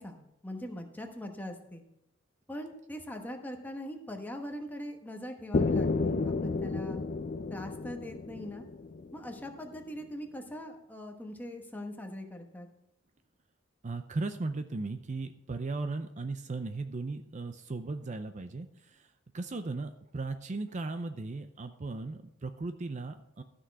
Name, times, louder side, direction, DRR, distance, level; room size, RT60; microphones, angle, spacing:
voice 1, 0.0-1.8 2.5-7.0 7.5-8.7 9.1-12.7, left 1 dB, 10° left, 3 dB, 1.1 m, -41 dB
sound 1, 5.5-9.4, left 3 dB, 40° left, 0.5 m, -31 dB
voice 2, 13.8-19.1 19.3-23.4, right 3 dB, 35° right, 9 dB, 0.5 m, -37 dB
12.5 x 6.3 x 4.6 m, 0.84 s
head